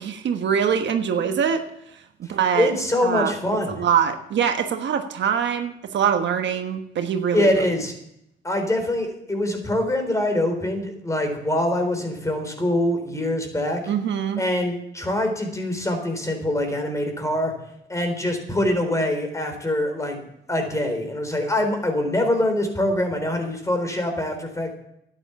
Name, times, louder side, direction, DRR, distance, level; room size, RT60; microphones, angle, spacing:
voice 1, 0.0-1.6 2.2-2.7 3.0-3.3 3.7-7.5 13.9-14.4, right 8 dB, 65° right, 6 dB, 1.4 m, -23 dB
voice 2, 2.6-3.8 7.3-7.9 8.4-13.8 14.4-17.5 17.9-20.2 20.5-24.7, left 1 dB, 15° left, 5 dB, 4.0 m, -24 dB
11.5 x 9.9 x 7.0 m, 0.77 s
cardioid pair, 90°, 20 cm